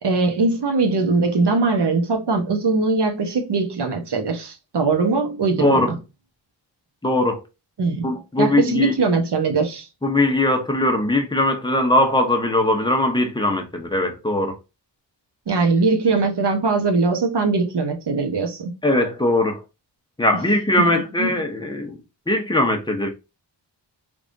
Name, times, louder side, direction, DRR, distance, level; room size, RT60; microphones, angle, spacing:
voice 1, 0.0-5.9 7.8-8.1 8.4-9.9 15.5-18.7 20.8-20.9 21.2-21.3, right 3 dB, 65° right, 1.1 m, -21 dB
voice 2, 5.6-5.9 7.0-7.4 8.0-8.9 10.0-14.6 18.8-19.6 20.2-22.0 22.3-23.1, left 1 dB, 10° left, 0.9 m, -20 dB
3.5 x 3.4 x 2.6 m
wide cardioid pair, 95°, 44 cm